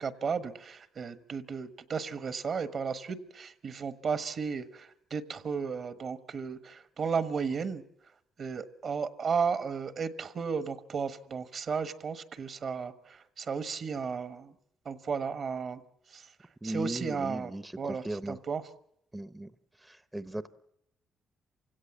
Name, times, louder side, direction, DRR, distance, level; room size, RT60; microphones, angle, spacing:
voice 1, 0.0-7.8 8.4-14.5 14.8-15.8 16.1-16.3 16.6-18.6, right 5 dB, 50° right, 12 dB, 1.2 m, -34 dB
voice 2, 16.6-18.4 19.1-19.5 19.8-20.5, right 1 dB, 10° right, 13 dB, 0.8 m, -37 dB
27.5 x 17.0 x 7.2 m, 0.75 s
cardioid pair, 90°, 0 cm